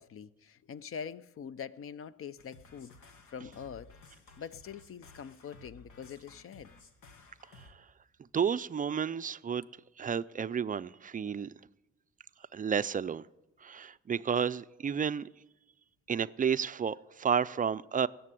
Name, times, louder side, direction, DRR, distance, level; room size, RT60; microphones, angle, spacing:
voice 1, 0.0-4.0 4.4-6.7, left 7 dB, 45° left, 0.6 m, -44 dB
sound 1, 2.4-7.7, left 3 dB, 90° left, 1.7 m, -56 dB
voice 2, 8.3-9.6 10.0-11.5 12.5-13.3 13.6-15.3 16.1-18.1, right 7 dB, 30° right, 0.4 m, -31 dB
17.0 x 6.8 x 9.8 m
cardioid pair, 90°, 30 cm